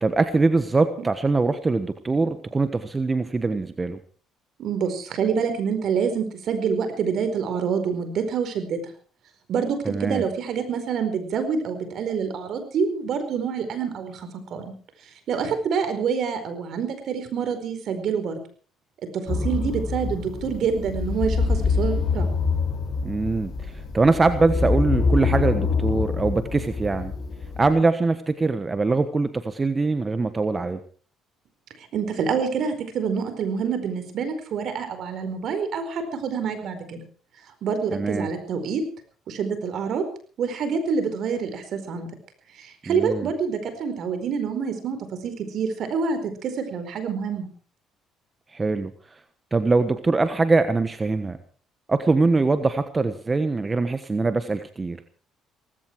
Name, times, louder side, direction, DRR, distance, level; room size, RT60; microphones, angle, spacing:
voice 1, 0.0-4.0 9.8-10.2 23.0-27.1 27.6-30.8 37.9-38.3 42.9-43.3 48.5-49.2 49.5-51.4 51.9-55.0, right 3 dB, 25° right, 10 dB, 1.3 m, -23 dB
voice 2, 4.6-8.8 9.5-14.7 15.3-18.4 19.3-22.3 31.8-37.0 37.6-38.8 39.3-40.0 40.4-42.1 42.5-45.0 45.2-47.5, right 6 dB, 65° right, 9 dB, 4.6 m, -27 dB
sound 1, 19.3-27.7, left 4 dB, 50° left, 5.5 m, -25 dB
18.0 x 16.0 x 4.7 m, 0.43 s
supercardioid pair, 80°, 0 cm